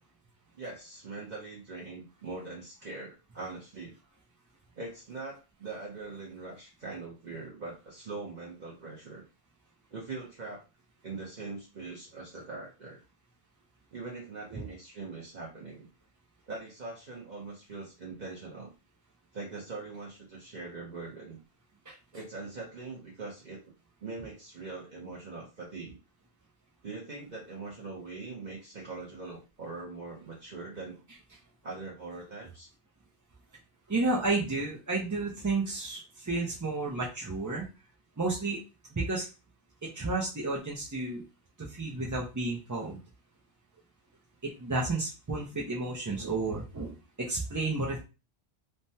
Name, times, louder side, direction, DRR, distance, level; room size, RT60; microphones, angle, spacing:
voice 1, 0.5-3.9 4.8-9.3 9.9-10.6 11.0-13.0 13.9-15.9 16.5-18.7 19.3-21.4 22.1-23.6 24.0-26.0 26.8-31.0 31.6-32.7, right 3 dB, 45° right, -4 dB, 0.8 m, -42 dB
voice 2, 33.9-37.6 38.2-38.6 39.0-39.3 39.9-41.2 41.8-43.0 44.4-48.0, right 3 dB, 30° right, -4 dB, 0.3 m, -31 dB
3.3 x 2.1 x 2.7 m, 0.30 s
omnidirectional pair, 1.1 m